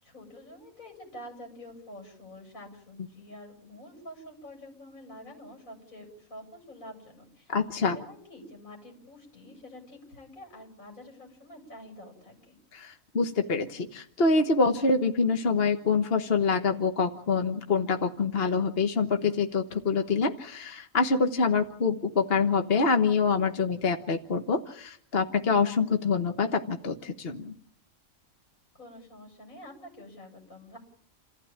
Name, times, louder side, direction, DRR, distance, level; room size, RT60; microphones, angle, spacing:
voice 1, 0.0-12.6 28.7-30.8, left 1 dB, 85° left, 2 dB, 8.5 m, -47 dB
voice 2, 7.5-8.0 12.7-27.5, left 4 dB, 45° left, 5 dB, 1.5 m, -26 dB
29.0 x 15.0 x 8.9 m, 0.64 s
omnidirectional pair, 1.4 m